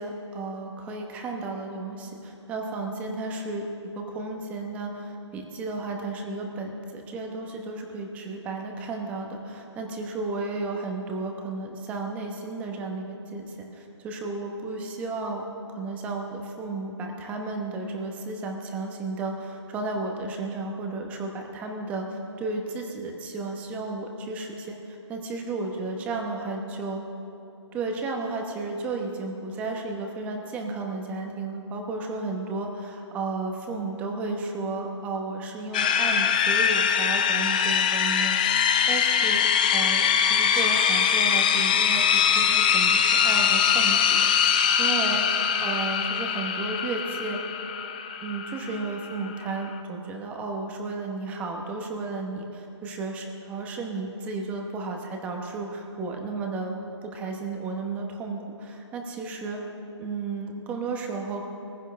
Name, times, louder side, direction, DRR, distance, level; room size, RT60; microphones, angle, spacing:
voice 1, 0.0-3.6 3.9-15.4 15.7-27.0 27.7-47.4 48.2-59.6 60.0-61.5, right 3 dB, 10° right, 2 dB, 0.9 m, -33 dB
sound 1, 35.7-49.8, left 7 dB, 15° left, 0.4 m, -23 dB
21.0 x 15.5 x 3.3 m, 2.8 s
hypercardioid pair, 165°, 15 cm